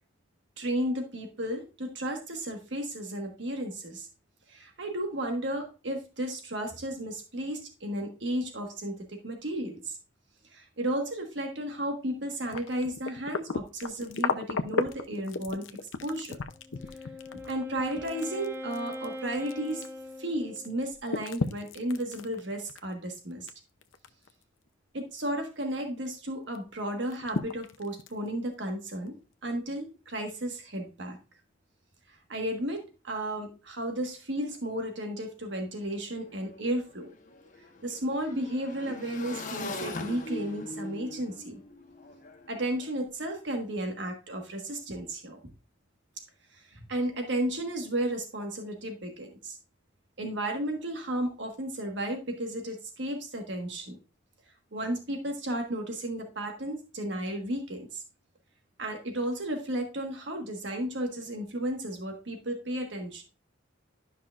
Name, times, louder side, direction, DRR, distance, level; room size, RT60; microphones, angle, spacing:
voice 1, 0.6-4.1 4.5-10.0 10.5-15.6 16.0-16.4 17.5-19.9 20.2-23.5 24.9-31.2 32.1-37.1 37.8-41.6 42.5-45.4 46.5-49.6 50.2-54.0 54.7-58.0 58.8-63.2, right 1 dB, 65° right, 3 dB, 1.5 m, -33 dB
sound 1, 12.3-20.3 20.6-23.5 23.8-24.3 24.7-24.8 26.0-26.1 26.5-26.6 27.1-28.3 29.1-29.2, left 4 dB, 85° left, 0.6 m, -34 dB
Wind instrument woodwind instrument, 16.5-20.9, left 1 dB, 10° right, 0.7 m, -41 dB
Motorcycle / Engine, 35.5-35.6 35.8-43.0, left 2 dB, 45° left, 1.0 m, -41 dB
12.0 x 5.7 x 2.4 m, 0.32 s
head